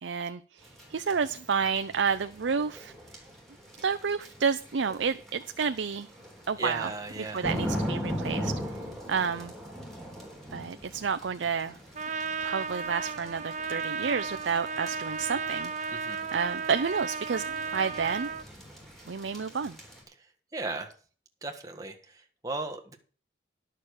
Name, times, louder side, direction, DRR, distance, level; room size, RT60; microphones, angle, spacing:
voice 1, 0.0-2.9 3.8-6.1 6.5-6.9 7.3-8.5 9.1-9.5 10.5-11.8 12.4-15.7 16.3-18.3 19.1-19.8, right 6 dB, 85° right, 10 dB, 0.5 m, -30 dB
sound 1, 0.6-20.0, equal, ahead, 3.4 m, -40 dB
voice 2, 6.6-7.5 15.9-16.2 20.5-20.9 21.4-23.0, right 3 dB, 20° right, 3 dB, 1.6 m, -36 dB
Trumpet, 11.9-18.4, right 5 dB, 40° right, 0.7 m, -34 dB
11.5 x 6.6 x 6.5 m, 0.40 s
head